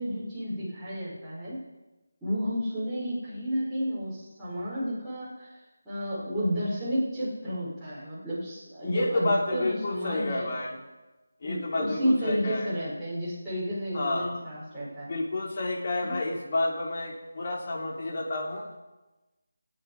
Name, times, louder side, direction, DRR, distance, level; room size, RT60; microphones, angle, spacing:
voice 1, 0.0-1.6 2.2-5.5 5.8-10.5 11.4-15.1 16.0-16.1, equal, ahead, -15 dB, 6.1 m, -31 dB
voice 2, 8.8-10.8 11.4-12.7 13.9-14.3 15.1-18.7, left 2 dB, 40° left, -1 dB, 3.7 m, -30 dB
26.0 x 9.4 x 5.1 m, 1.1 s
figure-of-eight pair, 165°, 0 cm